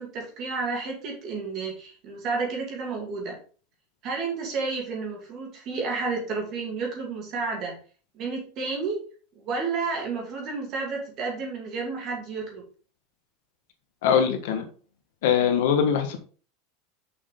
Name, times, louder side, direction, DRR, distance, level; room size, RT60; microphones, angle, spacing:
voice 1, 0.0-3.4 4.0-7.8 8.1-9.0 9.4-12.6, right 4 dB, 30° right, 0 dB, 2.4 m, -31 dB
voice 2, 14.0-14.7 15.2-16.2, left 7 dB, 65° left, 5 dB, 1.5 m, -22 dB
6.5 x 5.5 x 3.8 m, 0.40 s
supercardioid pair, 175°, 0 cm